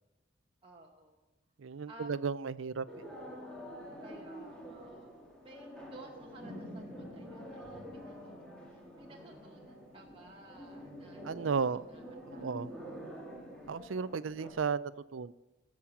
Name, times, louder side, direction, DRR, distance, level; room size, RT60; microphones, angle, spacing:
voice 1, 0.6-1.2 1.9-2.1 4.0-5.1 5.4-8.2 8.7-12.8, right 2 dB, 25° right, -1 dB, 1.2 m, -55 dB
voice 2, 1.6-2.8 11.2-11.8 12.3-12.7 13.7-15.3, right 5 dB, 85° right, 17 dB, 0.5 m, -34 dB
sound 1, 2.9-14.5, equal, 5° left, 2.9 m, -47 dB
18.0 x 7.4 x 7.2 m, 1.1 s
head